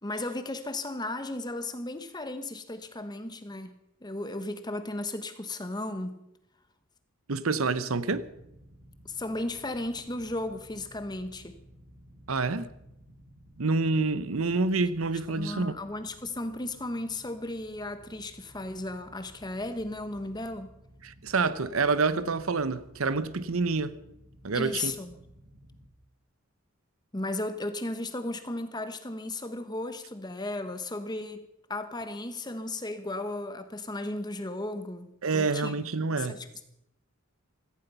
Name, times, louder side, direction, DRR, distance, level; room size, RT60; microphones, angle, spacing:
voice 1, 0.0-3.7 4.0-6.2 9.0-11.5 15.4-20.7 24.5-25.1 27.1-35.7 36.1-36.4, left 2 dB, 20° left, 1.2 m, -35 dB
voice 2, 7.3-8.3 12.3-12.7 13.6-15.8 21.0-24.0 24.4-24.9 35.2-36.4, right 4 dB, 80° right, 0.9 m, -27 dB
sound 1, 8.1-25.9, equal, 60° right, 2.3 m, -55 dB
17.0 x 15.0 x 5.6 m
head